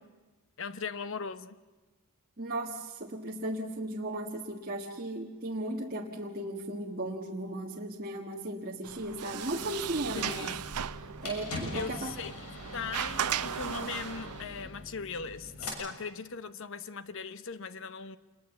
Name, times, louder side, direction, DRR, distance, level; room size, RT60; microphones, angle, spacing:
voice 1, 0.6-1.6 10.1-10.6 11.7-12.3 12.7-18.2, left 5 dB, 60° left, 1.0 m, -39 dB
voice 2, 2.4-10.6 11.0-12.1, right 1 dB, 40° right, 1.5 m, -36 dB
Sliding door, 8.8-14.4, right 9 dB, 90° right, 0.7 m, -37 dB
sound 1, 9.7-15.7, left 2 dB, 90° left, 6.9 m, -43 dB
27.0 x 21.0 x 7.2 m
head